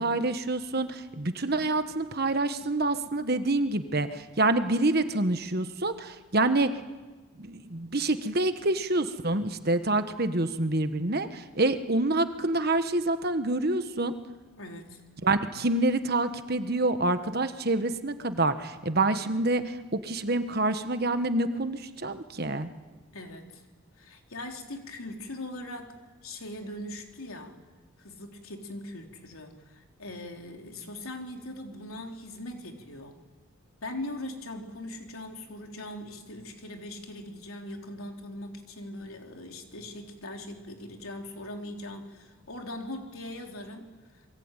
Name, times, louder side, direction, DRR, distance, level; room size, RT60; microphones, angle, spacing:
voice 1, 0.0-6.7 7.4-14.2 15.2-22.7, right 2 dB, 45° right, 9 dB, 1.4 m, -27 dB
voice 2, 14.6-15.0 23.1-23.6 24.0-25.9 26.2-27.5 28.0-33.2 33.8-43.9, left 1 dB, 80° left, 3 dB, 3.5 m, -40 dB
27.5 x 22.5 x 9.1 m, 1.3 s
head